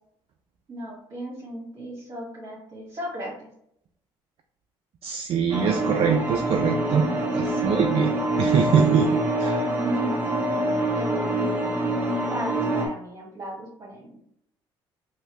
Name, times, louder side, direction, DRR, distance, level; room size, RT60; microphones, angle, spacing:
voice 1, 0.7-3.5 7.5-8.4 9.2-9.3 9.8-10.2 10.9-11.6 11.9-14.2, equal, 35° right, -6 dB, 1.3 m, -35 dB
voice 2, 5.0-8.1 8.4-9.6, right 7 dB, 55° right, 4 dB, 0.4 m, -23 dB
sound 1, 5.5-12.9, right 1 dB, 15° right, 1.2 m, -25 dB
3.0 x 2.7 x 2.9 m, 0.73 s
supercardioid pair, 60°, 12 cm